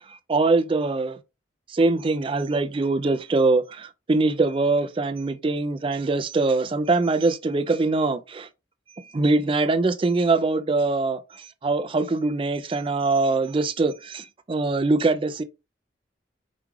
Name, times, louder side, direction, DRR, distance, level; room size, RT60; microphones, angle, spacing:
voice 1, 0.1-1.2 1.7-8.5 9.1-15.4, right 3 dB, 30° right, 0.3 m, -23 dB
5.0 x 2.3 x 3.0 m
head